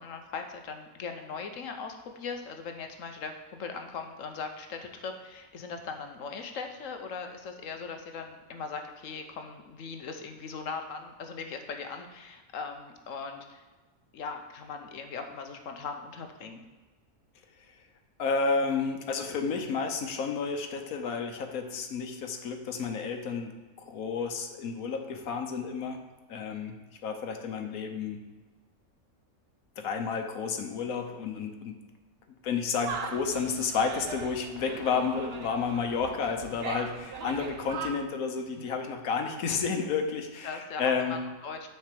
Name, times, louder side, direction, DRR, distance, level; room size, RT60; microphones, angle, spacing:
voice 1, 0.0-13.6 14.1-16.6 38.5-38.6 40.4-41.7, left 5 dB, 70° left, 5 dB, 1.1 m, -39 dB
voice 2, 18.2-23.5 23.8-26.0 26.3-26.7 27.0-28.2 29.8-31.7 32.4-41.2, left 5 dB, 90° left, 4 dB, 1.3 m, -31 dB
sound 1, 32.9-37.9, right 5 dB, 55° right, 0.9 m, -40 dB
6.3 x 4.5 x 6.7 m, 1.3 s
omnidirectional pair, 1.4 m